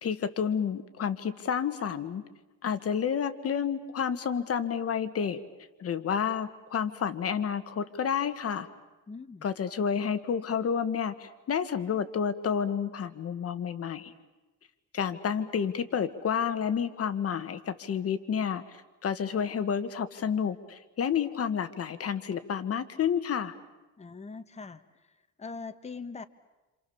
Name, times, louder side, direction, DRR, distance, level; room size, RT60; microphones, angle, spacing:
voice 1, 0.0-2.2 2.6-5.4 5.8-8.7 9.4-14.1 14.9-23.5, left 7 dB, 45° left, 10 dB, 1.7 m, -30 dB
voice 2, 9.1-9.4 24.0-24.8 25.4-26.2, left 4 dB, 20° left, 9 dB, 1.2 m, -41 dB
28.5 x 28.0 x 7.1 m, 1.1 s
cardioid pair, 125°, 32 cm